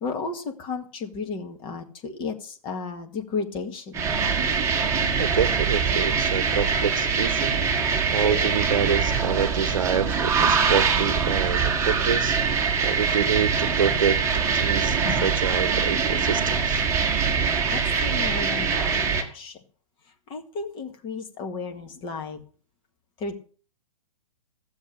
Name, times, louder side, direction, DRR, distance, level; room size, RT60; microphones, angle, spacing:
voice 1, 0.0-4.1 17.7-19.6 20.3-22.4 23.2-23.3, left 4 dB, 30° left, 2.0 m, -33 dB
sound 1, 3.9-19.2, right 5 dB, 15° right, 1.7 m, -23 dB
voice 2, 5.2-7.6 8.1-12.4 12.8-16.8, right 7 dB, 65° right, 0.9 m, -27 dB
14.5 x 7.3 x 6.4 m
figure-of-eight pair, 120°, 18 cm